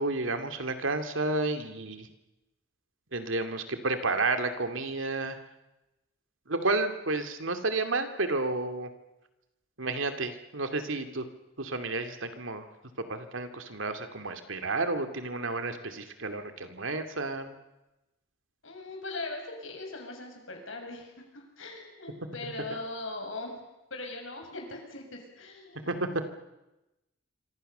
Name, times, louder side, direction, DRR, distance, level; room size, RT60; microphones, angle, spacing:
voice 1, 0.0-2.1 3.1-5.4 6.5-8.9 9.8-11.2 11.6-12.6 13.1-17.5 25.9-26.0, right 3 dB, 75° right, 7 dB, 2.5 m, -31 dB
voice 2, 18.6-23.6 23.9-26.3, left 2 dB, 75° left, 3 dB, 6.8 m, -40 dB
27.0 x 25.0 x 6.8 m, 0.98 s
head